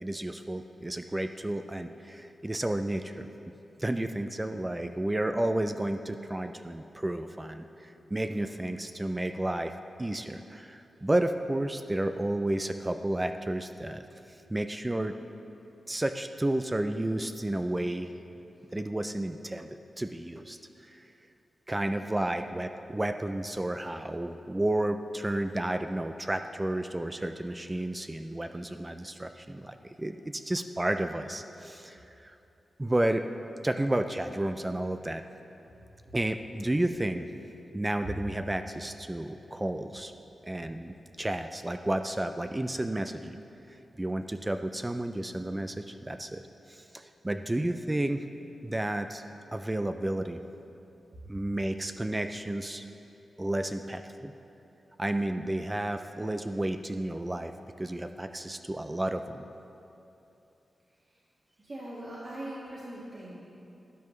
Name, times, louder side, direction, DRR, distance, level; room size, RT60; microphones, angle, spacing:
voice 1, 0.0-3.3 3.8-9.7 10.0-14.0 14.5-15.2 15.9-18.1 18.7-21.0 21.7-32.3 32.8-33.3 33.6-35.2 36.1-37.3 37.7-40.1 40.4-43.4 44.0-46.4 46.7-48.3 48.6-49.2 49.5-50.4 51.3-52.9 53.4-54.3 55.0-57.5 57.8-59.4, right 1 dB, 15° right, 8 dB, 0.3 m, -32 dB
voice 2, 8.2-8.6 22.0-22.3 47.2-47.4 61.0-61.2 61.6-63.4, right 1 dB, 40° right, -8 dB, 1.8 m, -43 dB
12.0 x 10.5 x 3.2 m, 2.9 s
wide cardioid pair, 100°, 0 cm